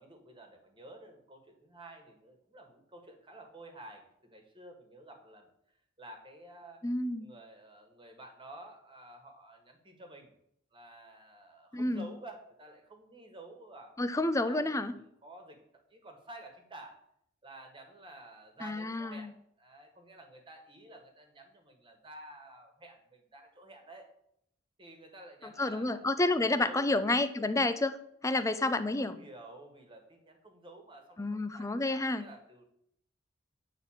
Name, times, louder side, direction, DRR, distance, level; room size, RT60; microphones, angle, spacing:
voice 1, 0.0-5.5 6.0-6.8 7.2-10.3 10.7-14.7 15.2-15.6 15.9-17.0 17.4-19.3 19.6-24.1 24.8-26.1 26.4-26.9 29.0-32.6, right 2 dB, 25° right, 4 dB, 1.6 m, -51 dB
voice 2, 6.8-7.3 11.7-12.1 14.0-14.9 18.6-19.3 25.6-28.0 28.2-29.2 31.2-32.3, left 2 dB, 15° left, 11 dB, 0.5 m, -30 dB
9.1 x 3.9 x 7.1 m, 0.73 s
head